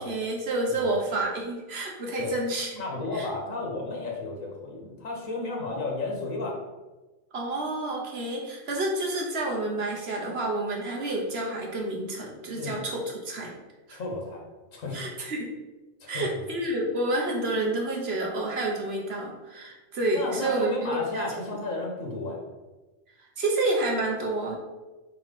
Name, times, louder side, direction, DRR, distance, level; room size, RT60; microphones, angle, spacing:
voice 1, 0.0-2.8 3.1-3.3 5.7-5.9 7.3-13.5 13.9-14.0 14.9-15.5 16.1-21.6 23.4-24.6, right 2 dB, 55° right, -1 dB, 1.3 m, -29 dB
voice 2, 2.8-6.6 12.6-12.8 13.9-14.4 14.7-15.0 16.0-16.3 20.1-22.4, left 2 dB, 85° left, -1 dB, 1.6 m, -33 dB
4.4 x 4.0 x 5.2 m, 1.2 s
omnidirectional pair, 1.3 m